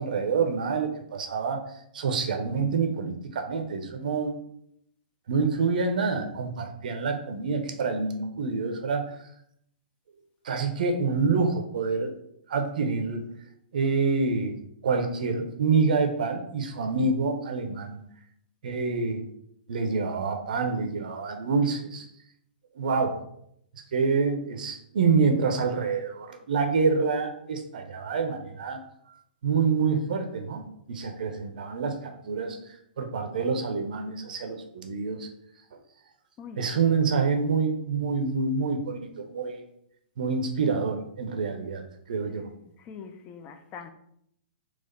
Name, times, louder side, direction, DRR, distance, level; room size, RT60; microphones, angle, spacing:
voice 1, 0.0-1.6 1.9-4.3 5.3-9.2 10.4-12.1 12.5-13.2 13.7-18.0 18.6-19.2 19.7-22.1 22.7-23.2 23.9-28.8 29.4-30.6 30.9-35.3 36.6-39.6 40.2-41.8 42.1-42.5, right 4 dB, 55° right, 0.6 m, -27 dB
voice 2, 36.4-36.9 42.6-43.9, left 6 dB, 25° left, 0.4 m, -43 dB
4.1 x 2.4 x 4.1 m
figure-of-eight pair, 110°, 5 cm